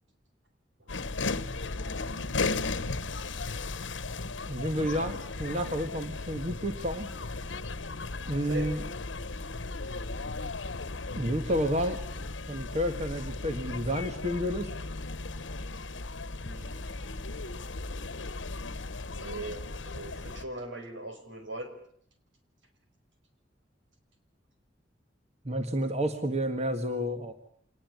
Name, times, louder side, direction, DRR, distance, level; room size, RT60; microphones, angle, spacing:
sound 1, 0.9-20.4, left 3 dB, 80° left, 1.2 m, -36 dB
voice 1, 4.5-7.1 8.3-8.8 11.2-12.0 12.5-14.7 25.5-27.3, equal, 35° right, 7 dB, 1.8 m, -30 dB
voice 2, 16.4-17.0 19.1-21.7, right 1 dB, 85° right, 6 dB, 5.6 m, -40 dB
26.5 x 20.0 x 9.5 m, 0.64 s
head